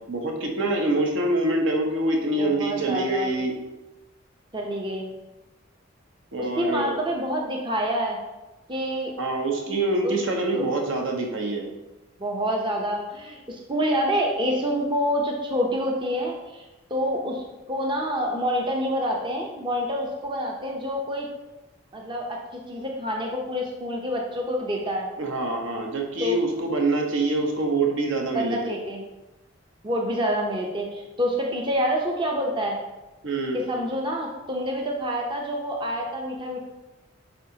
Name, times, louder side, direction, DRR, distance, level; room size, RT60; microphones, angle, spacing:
voice 1, 0.1-3.5 6.3-6.9 9.2-11.7 25.2-28.7 33.2-33.6, right 2 dB, 70° right, 1 dB, 1.0 m, -25 dB
voice 2, 2.4-3.3 4.5-5.1 6.4-8.2 8.7-9.1 10.0-10.1 10.5-10.7 12.2-16.7 16.9-21.3 21.9-25.1 26.2-26.4 28.3-29.0 29.8-32.8 33.5-36.6, equal, 25° right, -1 dB, 0.6 m, -27 dB
8.9 x 3.8 x 2.8 m, 1.1 s
head